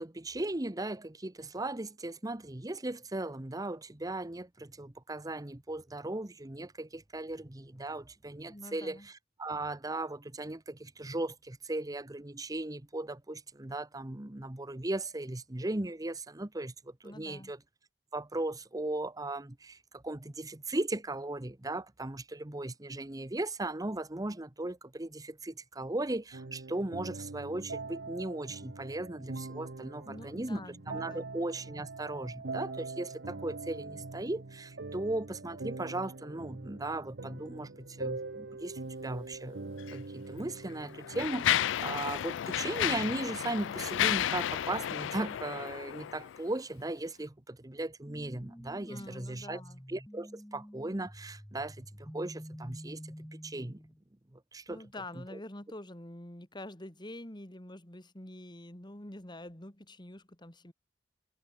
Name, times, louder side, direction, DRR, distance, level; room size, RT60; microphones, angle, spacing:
voice 1, 0.0-9.1 9.4-17.6 18.1-49.6 49.9-53.8 54.3-54.8, right 2 dB, 20° right, 1.0 m, -37 dB
voice 2, 8.5-9.1 17.0-17.5 30.0-31.3 48.8-49.8 54.7-60.7, left 1 dB, 25° left, 2.7 m, -46 dB
sound 1, 26.3-41.3, right 3 dB, 70° right, 0.9 m, -43 dB
Mechanisms, 39.8-39.9 40.7-46.4, left 11 dB, 85° left, 0.3 m, -32 dB
sound 2, 48.1-54.0, equal, 10° left, 2.2 m, -49 dB
head